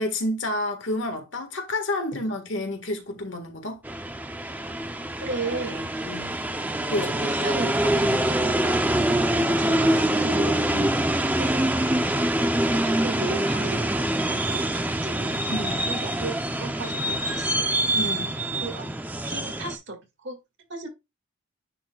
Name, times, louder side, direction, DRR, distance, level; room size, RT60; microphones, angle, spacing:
voice 1, 0.0-3.8 6.0-6.4 6.9-7.2 8.9-9.2 10.7-11.1 15.5-15.9 17.9-18.3, left 1 dB, 65° left, 1.5 m, -30 dB
sound 1, 3.8-19.8, right 1 dB, 10° right, 0.5 m, -25 dB
voice 2, 5.2-6.0 6.9-8.8 9.4-10.7 11.4-11.7 12.7-15.4 15.9-17.7 18.6-18.9 19.2-20.4 20.7-20.9, right 3 dB, 60° right, 1.8 m, -35 dB
9.9 x 4.2 x 2.3 m
head